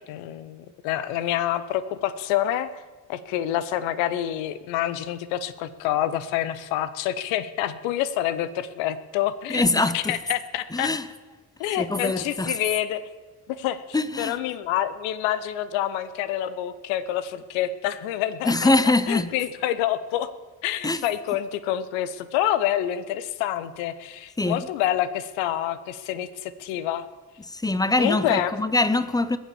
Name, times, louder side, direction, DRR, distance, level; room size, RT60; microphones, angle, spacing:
voice 1, 0.1-2.7 3.1-9.6 9.9-10.9 11.6-13.0 13.5-13.8 14.2-20.3 20.6-27.1 28.0-28.5, left 12 dB, 65° left, 0.9 m, -27 dB
voice 2, 9.5-10.2 10.7-11.1 11.8-12.6 13.9-14.4 18.4-19.3 20.8-21.0 24.4-24.7 27.5-29.4, left 2 dB, 10° left, 0.7 m, -23 dB
21.0 x 7.3 x 7.1 m
figure-of-eight pair, 40°, 50 cm